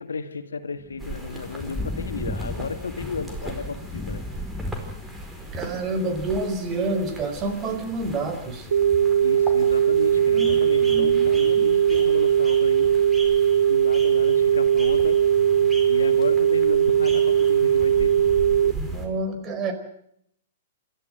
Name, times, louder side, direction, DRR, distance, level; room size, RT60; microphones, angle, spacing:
voice 1, 0.0-4.2 9.2-12.9 13.7-15.2 15.9-18.1, left 5 dB, 80° left, 9 dB, 1.8 m, -33 dB
Thunder / Rain, 0.8-10.3, left 2 dB, 10° left, 1.0 m, -37 dB
sound 1, 1.0-19.1, right 1 dB, 10° right, 4.7 m, -38 dB
voice 2, 5.5-8.7 10.3-11.3 11.6-11.7 18.6-19.7, right 2 dB, 30° right, 7 dB, 4.7 m, -29 dB
sound 2, 8.7-18.7, right 9 dB, 75° right, 1.2 m, -19 dB
27.5 x 13.5 x 7.8 m, 0.71 s
hypercardioid pair, 115°, 0 cm